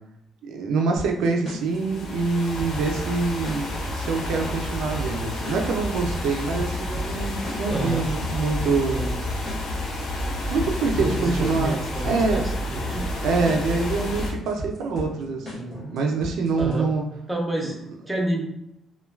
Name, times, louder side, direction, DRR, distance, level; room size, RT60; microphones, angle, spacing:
voice 1, 0.4-9.2 10.5-11.7 12.0-12.4 13.2-17.1 17.6-17.7, right 4 dB, 85° right, 2 dB, 0.4 m, -25 dB
sound 1, 1.0-16.9, equal, 20° left, 1.0 m, -38 dB
sound 2, 1.6-14.3, left 1 dB, 85° left, 0.6 m, -30 dB
voice 2, 7.7-8.1 10.9-13.0 16.6-16.9 17.3-18.5, right 1 dB, 5° right, -1 dB, 0.4 m, -29 dB
3.0 x 2.2 x 2.2 m, 0.82 s
cardioid pair, 155°, 0 cm